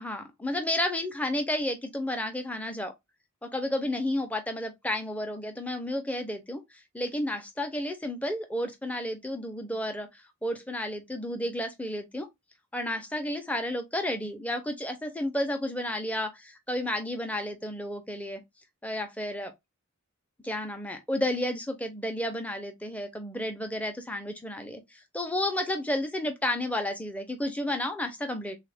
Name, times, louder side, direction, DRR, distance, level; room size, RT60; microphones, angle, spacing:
voice 1, 0.0-2.9 3.4-12.3 12.7-18.4 18.8-19.5 20.4-28.6, left 1 dB, 5° left, 0.5 m, -32 dB
3.4 x 2.4 x 3.3 m
head